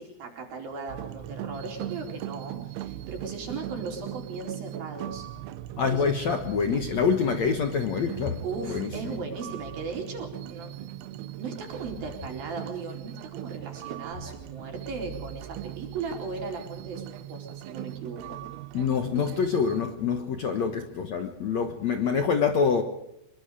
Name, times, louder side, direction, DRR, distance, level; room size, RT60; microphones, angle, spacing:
voice 1, 0.0-5.3 5.9-6.1 8.4-10.9 11.2-18.4 20.6-20.7, right 4 dB, 60° right, 5.9 m, -37 dB
sound 1, 0.9-19.8, right 13 dB, 75° right, 2.8 m, -39 dB
voice 2, 5.8-9.1 18.7-22.8, left 6 dB, 60° left, 2.0 m, -26 dB
26.0 x 22.5 x 4.9 m
omnidirectional pair, 4.8 m